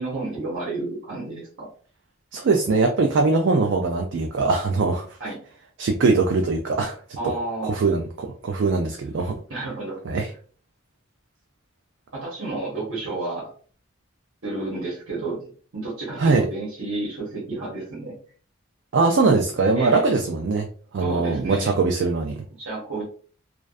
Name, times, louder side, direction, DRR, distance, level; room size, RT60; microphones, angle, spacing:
voice 1, 0.0-1.7 5.2-5.4 7.2-7.8 9.5-10.0 12.1-13.5 14.4-18.1 19.7-20.1 21.0-21.7 22.6-23.0, right 2 dB, 80° right, -6 dB, 1.0 m, -31 dB
voice 2, 2.3-5.1 5.8-7.0 7.2-7.3 7.6-9.3 10.1-10.3 16.2-16.5 18.9-20.7 20.9-22.4, right 3 dB, 60° right, 2 dB, 0.3 m, -21 dB
2.5 x 2.2 x 2.3 m, 0.43 s
head